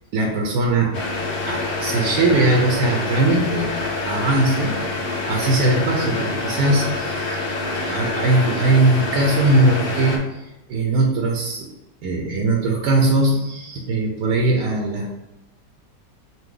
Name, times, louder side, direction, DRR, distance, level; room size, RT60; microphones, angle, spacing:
voice 1, 0.1-0.9 1.5-4.8 5.3-7.4 7.9-10.3 10.7-11.7 12.0-15.2, right 2 dB, 75° right, 1 dB, 1.2 m, -20 dB
sound 1, 0.9-10.2, left 3 dB, 75° left, 0.5 m, -26 dB
5.5 x 2.2 x 3.7 m, 0.96 s
omnidirectional pair, 1.9 m